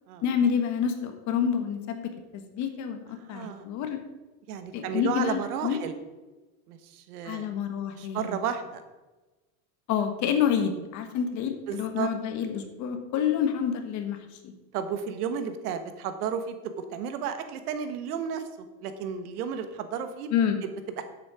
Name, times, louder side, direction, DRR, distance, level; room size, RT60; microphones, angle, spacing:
voice 1, 0.2-3.0 3.3-4.0 4.7-5.8 7.2-8.4 9.9-14.2 14.4-14.5 20.3-20.6, left 8 dB, 40° left, 6 dB, 1.5 m, -28 dB
voice 2, 3.1-3.7 4.5-5.9 6.7-7.5 7.9-8.8 11.7-12.1 14.7-20.3 20.6-21.0, right 7 dB, 85° right, 9 dB, 1.5 m, -33 dB
9.8 x 8.5 x 5.0 m, 1.2 s
supercardioid pair, 155°, 44 cm